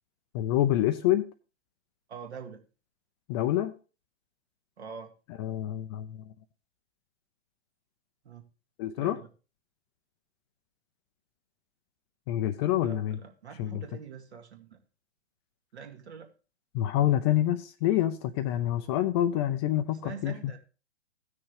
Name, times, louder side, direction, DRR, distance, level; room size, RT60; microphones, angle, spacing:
voice 1, 0.3-1.3 3.3-3.7 5.4-6.2 8.8-9.2 12.3-13.2 13.6-13.8 16.7-20.3, left 12 dB, 25° left, 11 dB, 0.4 m, -27 dB
voice 2, 2.1-2.6 4.8-5.1 8.2-8.4 9.0-9.3 12.8-14.8 15.7-16.3 19.9-20.6, right 6 dB, 70° right, 4 dB, 2.0 m, -44 dB
15.5 x 6.3 x 3.2 m, 0.34 s
hypercardioid pair, 120°, 35 cm